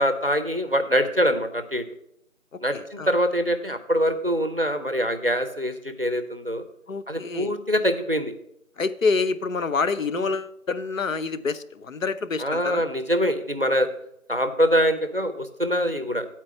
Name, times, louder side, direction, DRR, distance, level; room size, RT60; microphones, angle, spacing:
voice 1, 0.0-1.8 2.6-6.6 7.1-8.3 10.2-10.3 12.4-13.9 14.3-16.3, equal, 40° right, 9 dB, 0.6 m, -24 dB
voice 2, 2.5-3.1 6.9-7.5 8.8-12.8, left 4 dB, 65° left, 13 dB, 0.5 m, -27 dB
8.5 x 4.4 x 6.9 m, 0.76 s
figure-of-eight pair, 165°, 43 cm